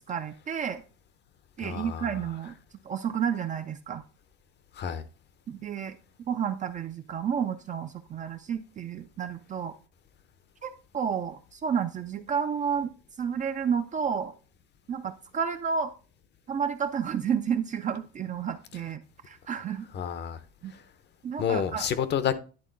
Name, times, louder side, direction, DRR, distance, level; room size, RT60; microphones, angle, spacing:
voice 1, 0.1-0.8 1.6-2.5 2.8-4.0 5.5-6.0 6.3-9.7 10.6-14.3 14.9-15.9 16.5-19.9 20.6-20.7 21.2-21.9, right 7 dB, 25° right, 0.4 m, -31 dB
voice 2, 1.6-2.1 4.7-5.0 19.9-20.4 20.7-20.8 21.4-22.4, left 8 dB, 35° left, 0.7 m, -29 dB
10.5 x 3.6 x 3.8 m
supercardioid pair, 120°, 32 cm